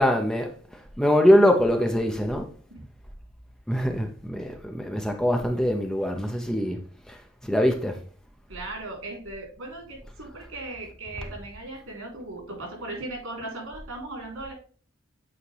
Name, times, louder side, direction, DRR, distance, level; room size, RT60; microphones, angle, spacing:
voice 1, 0.0-2.5 3.7-6.8 7.1-8.0, equal, 5° left, 0.6 m, -23 dB
voice 2, 8.5-14.5, right 2 dB, 90° right, 3.4 m, -37 dB
8.4 x 4.2 x 3.3 m
head